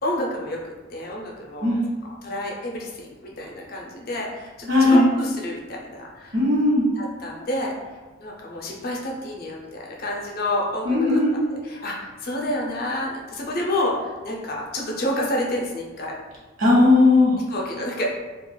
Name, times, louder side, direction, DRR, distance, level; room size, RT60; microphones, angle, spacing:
voice 1, 0.0-1.8 2.2-6.4 7.0-7.8 8.2-16.2 17.5-18.1, left 1 dB, 50° left, -2 dB, 0.5 m, -29 dB
voice 2, 4.7-5.1 6.3-6.9 10.8-11.4 16.6-17.3, left 2 dB, 85° right, -6 dB, 1.1 m, -17 dB
3.0 x 2.4 x 2.2 m, 1.3 s
head